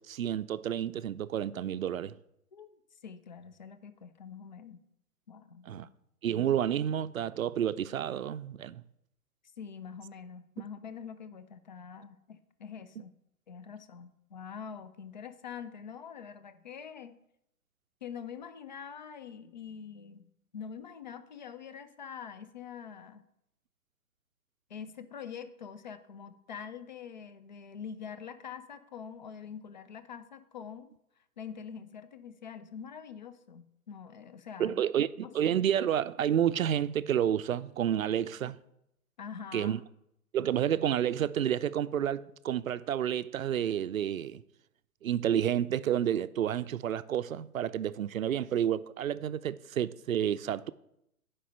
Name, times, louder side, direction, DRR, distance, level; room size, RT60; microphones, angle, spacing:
voice 1, 0.0-2.1 5.7-5.9 6.2-8.8 10.6-10.7 34.6-38.6 39.5-39.8 40.3-44.4 45.0-50.7, right 10 dB, 65° right, 0.5 m, -30 dB
voice 2, 3.0-4.8 5.3-5.9 9.6-13.1 13.5-17.2 18.0-23.2 24.7-30.9 31.4-34.8 35.2-35.6 38.4-38.5 39.2-39.8, left 7 dB, 30° left, 0.4 m, -45 dB
9.8 x 5.2 x 5.5 m
figure-of-eight pair, 130°, 45 cm